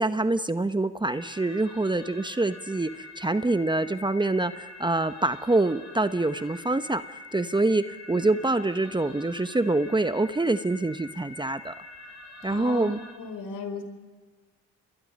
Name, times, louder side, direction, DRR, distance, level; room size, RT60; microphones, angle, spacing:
voice 1, 0.0-11.7 12.4-13.0, right 2 dB, 15° right, 11 dB, 0.9 m, -26 dB
sound 1, 1.1-13.1, left 2 dB, 50° left, 6.2 m, -45 dB
voice 2, 12.5-12.9 13.1-13.8, left 5 dB, 65° left, 7 dB, 4.3 m, -35 dB
29.0 x 21.5 x 5.4 m, 1.5 s
supercardioid pair, 65°, 34 cm